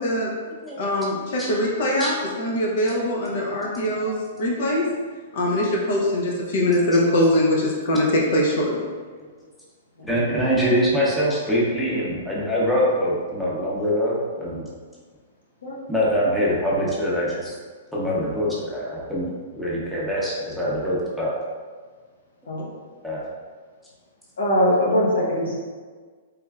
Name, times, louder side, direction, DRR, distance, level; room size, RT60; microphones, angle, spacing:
voice 1, 0.8-4.9 5.3-8.8, left 1 dB, 60° left, -2 dB, 0.6 m, -22 dB
voice 2, 7.8-8.1 9.2-9.3 10.0-14.7 15.9-17.5 17.9-19.3 19.5-21.3 23.0-23.2, equal, ahead, -7 dB, 0.7 m, -24 dB
voice 3, 24.4-25.6, equal, 90° left, -4 dB, 1.0 m, -21 dB
3.4 x 3.0 x 2.3 m, 1.5 s
hypercardioid pair, 140°, 0 cm